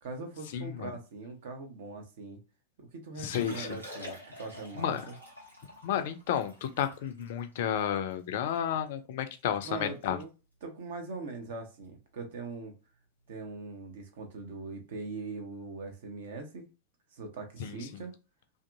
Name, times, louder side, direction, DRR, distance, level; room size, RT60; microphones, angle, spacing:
voice 1, 0.0-2.4 2.8-5.0 9.6-10.3 10.6-12.7 13.3-16.6 17.1-18.2, right 3 dB, 55° right, 0.7 m, -41 dB
voice 2, 0.5-0.9 3.2-3.8 4.8-5.0 5.8-10.2 17.6-18.0, left 9 dB, 55° left, 0.4 m, -32 dB
Liquid, 3.2-8.6 9.0-9.1 9.4-9.7 10.0-10.2 10.8-11.0 12.5-12.6, left 1 dB, 85° right, 1.1 m, -47 dB
2.6 x 2.5 x 2.4 m
figure-of-eight pair, 90°, 0 cm